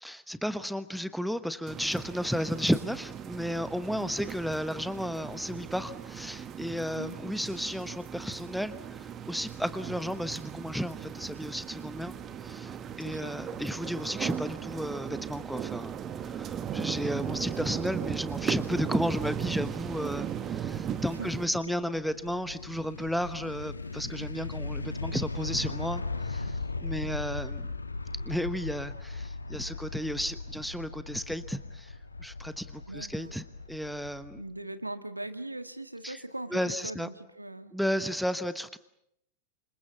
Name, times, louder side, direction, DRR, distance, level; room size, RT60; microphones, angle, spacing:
voice 1, 0.0-12.1 12.4-15.9 16.2-27.7 28.2-31.9 32.2-34.4 36.0-36.2 36.5-37.1 37.7-38.8, equal, ahead, 12 dB, 1.1 m, -33 dB
sound 1, 1.7-21.5, right 8 dB, 30° right, 1.4 m, -37 dB
voice 2, 13.0-13.4 21.0-21.7 32.9-33.3 34.4-37.7, right 1 dB, 85° right, 10 dB, 1.7 m, -40 dB
sound 2, 19.3-34.4, left 3 dB, 80° left, 1.8 m, -38 dB
29.0 x 26.0 x 7.2 m, 0.76 s
figure-of-eight pair, 90°, 0 cm